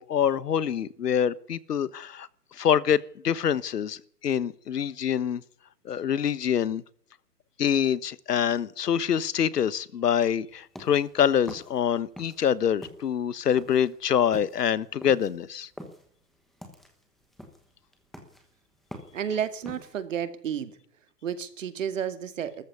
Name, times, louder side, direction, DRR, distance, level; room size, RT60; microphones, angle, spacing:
voice 1, 0.0-2.3 2.6-5.4 5.8-6.8 7.6-15.7, left 8 dB, 80° left, 1.3 m, -25 dB
sound 1, 10.5-12.5 12.8-20.0, equal, ahead, 1.1 m, -45 dB
voice 2, 19.1-20.8 21.2-22.6, right 8 dB, 50° right, 2.4 m, -31 dB
19.5 x 14.0 x 9.6 m
hypercardioid pair, 165°, 47 cm